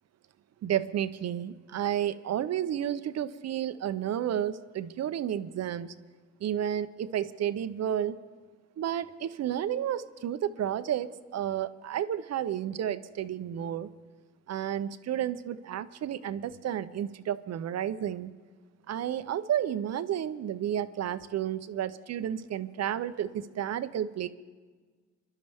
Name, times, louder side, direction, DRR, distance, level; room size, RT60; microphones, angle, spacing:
voice 1, 0.6-6.0 6.4-8.2 8.8-13.9 14.5-18.3 18.9-24.3, right 10 dB, 60° right, 13 dB, 0.7 m, -31 dB
26.0 x 12.0 x 3.5 m, 1.5 s
cardioid pair, 90°, 30 cm